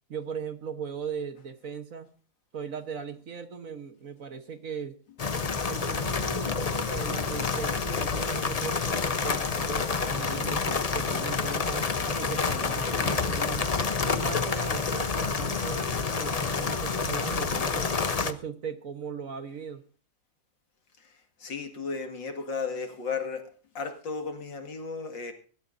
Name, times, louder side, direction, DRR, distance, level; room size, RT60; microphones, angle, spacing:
voice 1, 0.1-2.1 2.5-5.0 5.7-13.7 14.0-17.9 18.2-19.8, right 6 dB, 50° right, 8 dB, 1.4 m, -38 dB
sound 1, 5.2-18.3, left 5 dB, 60° left, 0.4 m, -28 dB
voice 2, 21.4-23.4 23.7-25.3, left 4 dB, 80° left, 5 dB, 2.8 m, -34 dB
23.5 x 13.0 x 2.6 m, 0.39 s
omnidirectional pair, 2.0 m